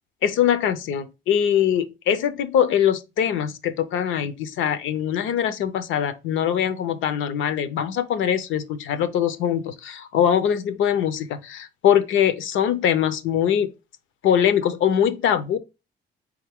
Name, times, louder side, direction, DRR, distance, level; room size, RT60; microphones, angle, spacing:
voice 1, 0.2-13.7 14.2-15.6, left 9 dB, 80° left, 0.6 m, -22 dB
4.2 x 3.5 x 3.5 m
cardioid pair, 90°, 20 cm